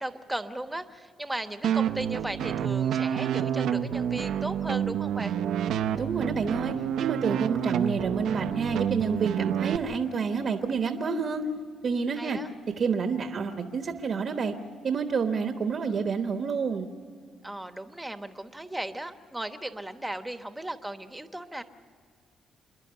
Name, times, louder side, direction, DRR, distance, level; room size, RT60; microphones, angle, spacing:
voice 1, 0.0-5.4 12.2-12.5 17.4-21.6, right 1 dB, 10° right, 9 dB, 1.1 m, -36 dB
sound 1, 1.6-9.8, right 9 dB, 80° right, 0.8 m, -28 dB
voice 2, 6.0-11.4 11.8-12.4 12.8-14.5 14.8-16.9, right 5 dB, 50° right, 6 dB, 1.1 m, -28 dB
27.5 x 10.5 x 9.8 m, 2.1 s
cardioid pair, 95°, 0 cm